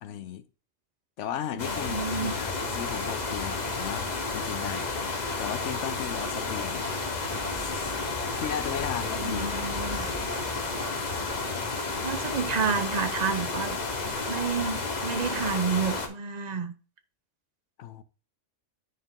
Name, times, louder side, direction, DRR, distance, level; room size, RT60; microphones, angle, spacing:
voice 1, 0.0-0.4 1.2-6.9 7.5-8.0 8.4-9.7 17.8-18.0, left 9 dB, 75° left, 0.9 m, -36 dB
sound 1, 1.6-16.1, left 3 dB, 40° left, 1.0 m, -31 dB
voice 2, 1.7-2.3 9.2-10.1 12.0-13.8 14.3-16.7, right 5 dB, 45° right, 0.6 m, -30 dB
sound 2, 7.2-12.4, right 1 dB, 20° right, 1.0 m, -42 dB
sound 3, 7.5-7.6 8.0-8.1 8.4-8.6 8.9-9.0 9.4-9.5 9.9-10.0 10.3-10.5 10.8-11.0 11.3-11.5 11.8-11.9 12.2-12.4 12.7-12.9 13.2-13.3 13.7-13.8 14.2-14.3 14.6-14.8, right 4 dB, 60° right, 1.2 m, -46 dB
9.7 x 3.3 x 3.7 m
omnidirectional pair, 1.3 m